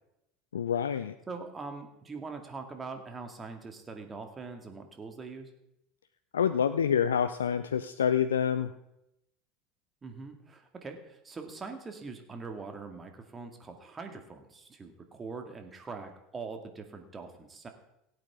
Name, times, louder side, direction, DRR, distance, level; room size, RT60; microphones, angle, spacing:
voice 1, 0.5-1.1 6.3-8.7, left 8 dB, 80° left, 12 dB, 0.4 m, -27 dB
voice 2, 1.3-5.5 10.0-17.7, right 4 dB, 25° right, 5 dB, 2.1 m, -42 dB
17.0 x 8.9 x 3.7 m, 0.85 s
figure-of-eight pair, 75°, 0 cm